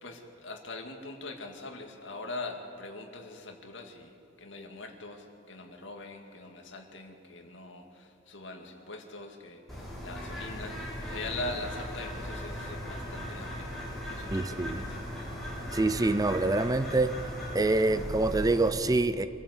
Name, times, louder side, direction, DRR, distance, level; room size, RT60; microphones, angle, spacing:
voice 1, 0.0-13.8 14.0-15.0, left 2 dB, 75° left, 3 dB, 2.2 m, -42 dB
Bird, 9.7-18.7, equal, ahead, 7.1 m, -38 dB
voice 2, 14.3-14.8 15.7-17.1 17.5-19.3, right 2 dB, 20° right, 13 dB, 0.6 m, -26 dB
25.0 x 14.5 x 8.2 m, 2.6 s
head